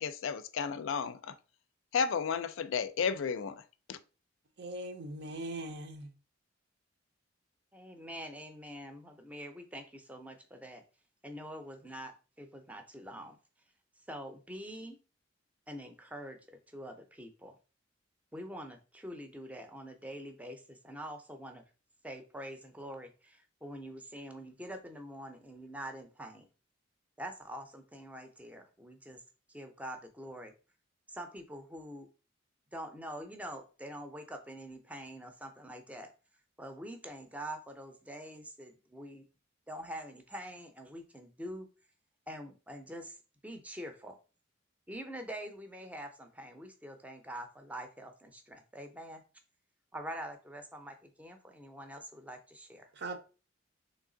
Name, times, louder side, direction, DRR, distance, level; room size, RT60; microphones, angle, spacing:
voice 1, 0.0-1.4 1.9-3.6 3.9-4.0, left 6 dB, 70° left, 0.4 m, -33 dB
voice 2, 4.6-6.1 52.9-53.2, right 1 dB, 55° right, 0.6 m, -40 dB
voice 3, 7.7-10.8 11.2-13.4 14.1-15.0 15.7-16.4 16.7-17.5 18.3-21.6 22.0-26.5 27.2-29.2 29.5-30.5 31.1-32.1 32.7-36.1 36.6-39.3 39.7-41.7 42.3-43.2 43.4-44.2 44.9-49.2 49.9-52.9, equal, 5° right, 0.5 m, -45 dB
3.5 x 3.1 x 3.7 m
head